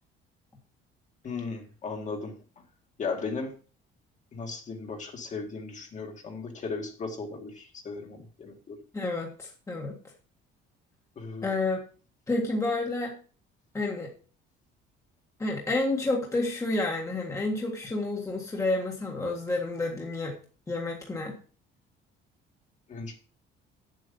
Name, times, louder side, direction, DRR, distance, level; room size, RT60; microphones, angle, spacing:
voice 1, 1.2-2.3 3.0-3.5 4.3-8.8 11.2-11.5 22.9-23.1, left 4 dB, 35° left, 3 dB, 2.2 m, -36 dB
voice 2, 8.9-10.0 11.4-11.8 12.3-13.1 13.7-14.1 15.4-20.3 20.7-21.3, left 2 dB, 15° left, 0 dB, 1.7 m, -29 dB
8.5 x 7.9 x 5.4 m, 0.39 s
cardioid pair, 140°, 20 cm